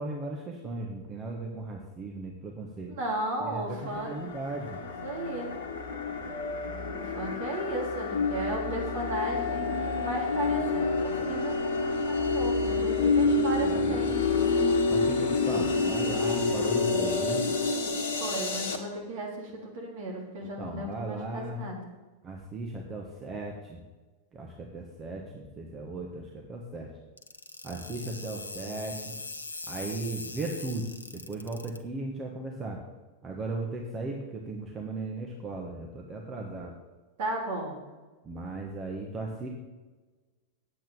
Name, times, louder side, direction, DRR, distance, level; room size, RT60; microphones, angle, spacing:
voice 1, 0.0-2.9 3.4-4.8 13.2-14.0 14.9-17.5 20.6-21.6 22.2-23.8 24.3-26.9 27.6-29.1 29.7-32.8 33.2-36.7 38.2-39.5, right 2 dB, 25° right, 0 dB, 1.5 m, -37 dB
voice 2, 2.9-4.1 5.0-5.5 6.9-14.3 17.9-21.8 37.2-37.8, right 2 dB, 55° right, -1 dB, 3.8 m, -35 dB
sound 1, 3.8-18.8, left 3 dB, 55° left, 1.4 m, -28 dB
sound 2, 27.2-31.8, left 3 dB, 75° left, 0.8 m, -41 dB
9.2 x 8.3 x 7.1 m, 1.2 s
figure-of-eight pair, 90°, 0 cm